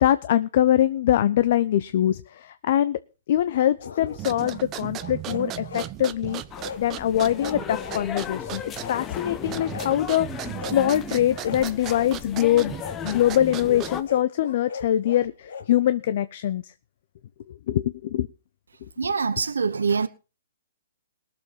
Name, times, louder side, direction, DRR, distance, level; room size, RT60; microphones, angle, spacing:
voice 1, 0.0-2.2 2.7-3.0 3.3-6.4 6.8-8.6 8.9-10.3 10.7-12.7 13.0-16.6 17.7-18.3, left 12 dB, 55° left, 0.7 m, -23 dB
sound 1, 3.5-4.6 5.0-5.9 6.2-6.8 7.1-8.1 8.4-9.3 9.7-10.0 10.6-10.8 11.3-12.1 12.8-13.0 13.8-15.7, left 5 dB, 70° left, 1.4 m, -39 dB
sound 2, 4.1-14.2, right 13 dB, 25° right, 0.7 m, -37 dB
sound 3, 6.5-14.0, left 8 dB, 20° left, 1.0 m, -36 dB
voice 2, 19.0-20.1, right 5 dB, 90° right, 0.9 m, -24 dB
19.0 x 7.1 x 5.7 m
hypercardioid pair, 140°, 0 cm